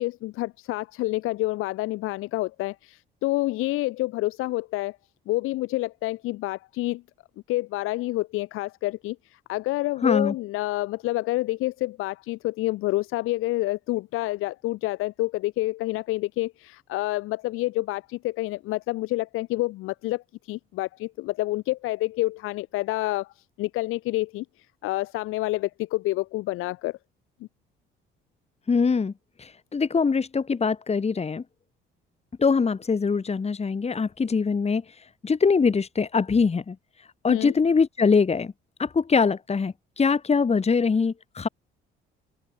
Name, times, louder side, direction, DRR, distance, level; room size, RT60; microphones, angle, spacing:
voice 1, 0.0-5.0 5.3-7.0 7.5-27.0 37.3-37.5, left 18 dB, 80° left, 2.1 m, -28 dB
voice 2, 10.0-10.3 28.7-29.1 29.4-31.4 32.4-38.5 38.8-41.5, left 5 dB, 30° left, 2.2 m, -23 dB
supercardioid pair, 80°, 21 cm